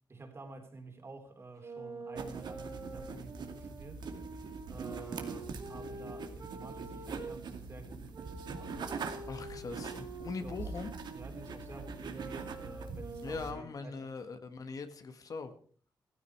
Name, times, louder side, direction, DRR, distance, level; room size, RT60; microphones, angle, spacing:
voice 1, 0.1-4.1 4.7-8.8 10.4-10.7 11.1-14.1, right 3 dB, 35° right, 3.5 m, -50 dB
sound 1, 1.6-7.4 8.1-13.7, right 3 dB, 50° right, 4.5 m, -47 dB
sound 2, 2.2-13.5, right 4 dB, 80° right, 2.4 m, -43 dB
voice 2, 9.3-10.9 13.2-15.5, left 4 dB, 55° left, 1.8 m, -41 dB
16.0 x 15.0 x 4.7 m
wide cardioid pair, 125°, 7 cm